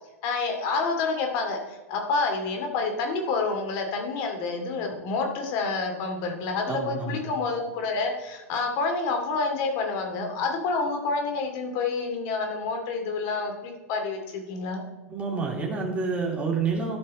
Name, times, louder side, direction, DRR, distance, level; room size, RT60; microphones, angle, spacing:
voice 1, 0.2-14.8, left 4 dB, 45° left, 3 dB, 2.5 m, -28 dB
voice 2, 6.7-7.2 15.1-17.0, right 4 dB, 15° right, -2 dB, 2.5 m, -28 dB
13.0 x 5.5 x 4.2 m, 1.2 s
hypercardioid pair, 100°, 8 cm